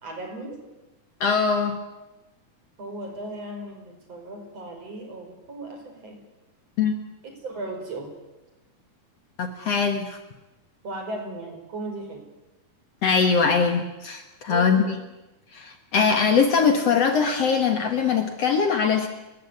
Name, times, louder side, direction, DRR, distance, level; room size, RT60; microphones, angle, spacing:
voice 1, 0.0-0.6 2.8-6.2 7.4-8.1 10.8-12.2 14.5-14.9, right 2 dB, 50° right, 3 dB, 6.2 m, -36 dB
voice 2, 1.2-1.8 6.8-7.0 9.4-10.2 13.0-14.8 15.5-19.1, left 5 dB, 55° left, 6 dB, 2.3 m, -22 dB
30.0 x 14.5 x 9.6 m, 1.0 s
omnidirectional pair, 3.8 m